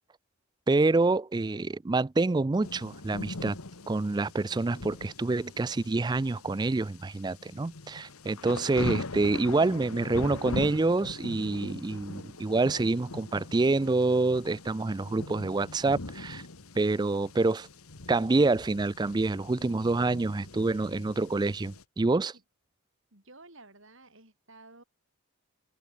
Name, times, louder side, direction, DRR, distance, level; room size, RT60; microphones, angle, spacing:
voice 1, 0.7-3.6 3.9-16.4 16.8-17.7 18.1-22.3, right 3 dB, 20° right, 0.3 m, -27 dB
sound 1, 2.6-21.8, left 2 dB, 75° left, 1.6 m, -41 dB
voice 2, 23.1-24.8, right 2 dB, 60° right, 6.4 m, -53 dB
head